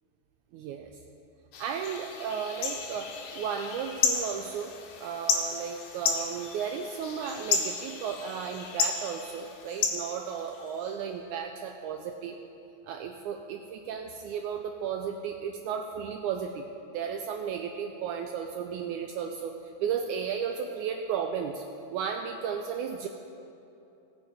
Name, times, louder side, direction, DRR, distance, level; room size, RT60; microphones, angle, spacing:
voice 1, 0.5-0.9 1.6-12.4 12.8-16.7 16.9-21.6 21.9-23.1, right 7 dB, 85° right, 4 dB, 1.7 m, -34 dB
sound 1, 1.5-10.9, left 5 dB, 80° left, 2.7 m, -33 dB
18.0 x 6.3 x 4.9 m, 2.8 s
omnidirectional pair, 4.0 m